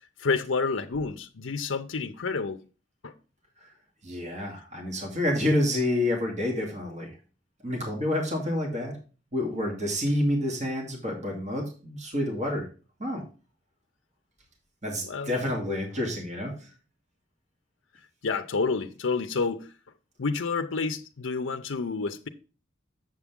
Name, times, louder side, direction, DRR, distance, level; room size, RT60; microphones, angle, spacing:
voice 1, 0.2-2.6 3.0-3.1 15.1-15.3 18.2-19.7 20.2-22.3, left 4 dB, 85° left, 0.7 m, -29 dB
voice 2, 4.0-7.2 7.6-9.0 9.3-12.7 13.0-13.2 14.8-16.7, left 1 dB, 40° right, 2.4 m, -28 dB
7.6 x 7.1 x 3.7 m
head